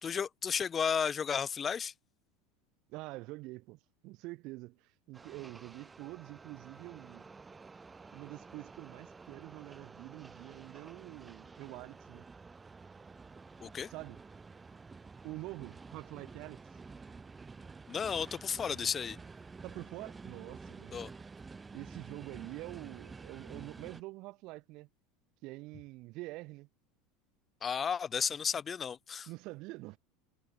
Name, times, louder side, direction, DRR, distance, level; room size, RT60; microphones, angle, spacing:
voice 1, 0.0-1.9 13.6-13.9 17.9-19.2 20.9-21.1 27.6-29.3, left 7 dB, 20° left, 0.5 m, -33 dB
voice 2, 2.9-7.3 8.1-12.3 13.9-14.2 15.2-16.6 19.6-21.0 21.7-24.9 25.4-26.7 29.3-30.0, right 22 dB, 50° right, 1.7 m, -46 dB
sound 1, 5.1-24.0, right 4 dB, 15° right, 1.4 m, -51 dB
supercardioid pair, 145°, 0 cm